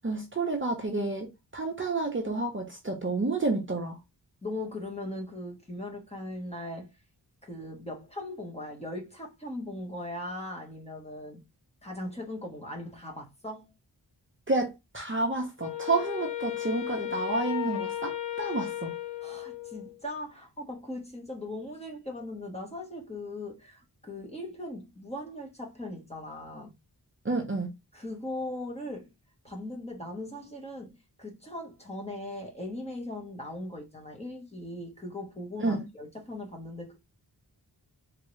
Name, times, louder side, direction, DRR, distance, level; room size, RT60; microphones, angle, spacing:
voice 1, 0.0-4.0 14.5-18.9 27.2-27.7 35.6-35.8, right 3 dB, 30° right, 0.8 m, -30 dB
voice 2, 4.4-6.9 7.4-11.4 11.8-13.7 19.2-26.7 27.9-29.1 29.4-37.0, left 1 dB, 15° left, 1.2 m, -39 dB
Wind instrument woodwind instrument, 15.6-20.0, left 12 dB, 80° left, 0.7 m, -35 dB
3.6 x 2.9 x 3.1 m
wide cardioid pair, 110°, 41 cm